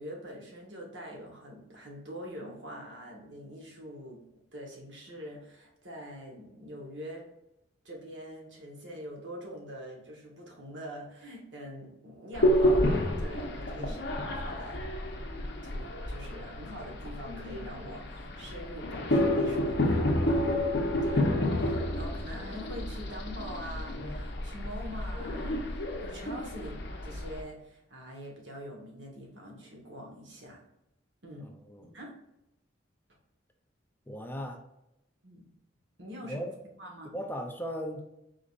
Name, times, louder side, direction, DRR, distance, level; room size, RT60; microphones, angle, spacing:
voice 1, 0.0-4.2 4.5-7.2 7.8-14.0 14.3-14.8 15.6-20.5 21.0-30.6 31.2-31.5 31.8-32.1 35.2-35.4 36.0-36.4 36.8-37.1, equal, 70° right, -1 dB, 1.5 m, -44 dB
sound 1, 12.3-27.4, left 1 dB, 65° left, 0.9 m, -30 dB
voice 2, 31.4-31.9 34.1-34.6 36.3-36.5 37.1-38.0, equal, 10° left, 3 dB, 0.5 m, -37 dB
5.0 x 3.9 x 2.5 m, 0.87 s
head